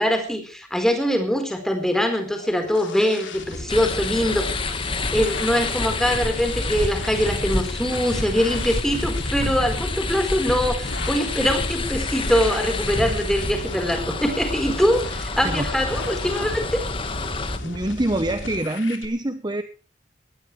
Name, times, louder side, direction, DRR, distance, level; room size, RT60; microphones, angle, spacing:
voice 1, 0.0-4.7 5.1-16.8, equal, 5° left, 5 dB, 4.5 m, -23 dB
sound 1, 2.1-19.1, left 2 dB, 90° left, 3.4 m, -36 dB
sound 2, 3.7-17.6, left 2 dB, 30° left, 1.7 m, -28 dB
voice 2, 17.6-19.6, right 1 dB, 25° right, 9 dB, 1.0 m, -25 dB
21.0 x 18.5 x 3.4 m, 0.37 s
head